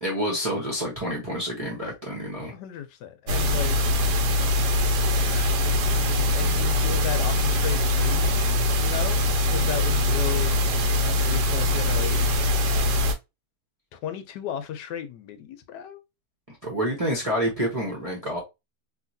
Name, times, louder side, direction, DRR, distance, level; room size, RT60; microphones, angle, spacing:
voice 1, 0.0-2.5 16.5-18.4, equal, 25° right, 0.9 m, -28 dB
voice 2, 2.5-3.8 5.3-10.6 11.1-12.7 13.9-16.0, left 9 dB, 80° left, 1.2 m, -35 dB
sound 1, 3.3-13.1, left 2 dB, 80° right, 1.3 m, -22 dB
3.0 x 2.8 x 2.5 m
omnidirectional pair, 1.9 m